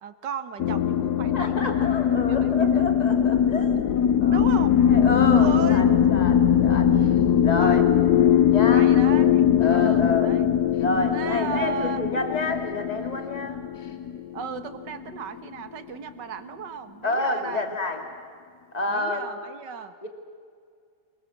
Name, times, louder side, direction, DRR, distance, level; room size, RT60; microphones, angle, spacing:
voice 1, 0.0-1.9 2.3-2.9 4.3-4.8 5.3-6.0 6.9-7.2 7.6-7.8 8.6-10.5 11.1-12.0 14.3-17.6 18.9-19.9, right 7 dB, 60° right, 11 dB, 1.8 m, -35 dB
sound 1, 0.6-15.2, left 9 dB, 65° left, 1.1 m, -21 dB
voice 2, 1.2-3.7 4.2-4.4 4.9-6.9 7.4-7.9 8.5-8.9 9.6-10.3 10.8-14.0 17.0-18.0 18.7-19.4 20.0-20.1, left 2 dB, 20° left, 4 dB, 2.5 m, -29 dB
26.0 x 22.0 x 7.3 m, 2.2 s
omnidirectional pair, 2.3 m